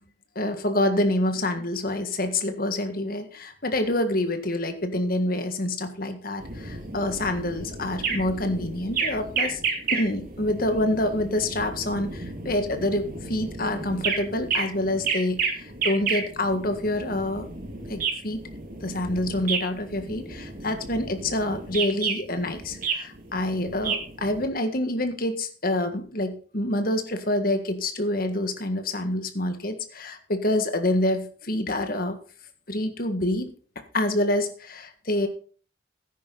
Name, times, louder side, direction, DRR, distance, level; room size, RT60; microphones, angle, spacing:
voice 1, 0.4-9.6 9.9-17.5 17.9-18.4 18.8-32.2 32.7-33.5 33.9-35.3, left 1 dB, 50° left, 8 dB, 1.8 m, -27 dB
sound 1, 6.4-24.5, right 5 dB, 45° right, 2.4 m, -32 dB
13.5 x 10.0 x 4.0 m, 0.40 s
head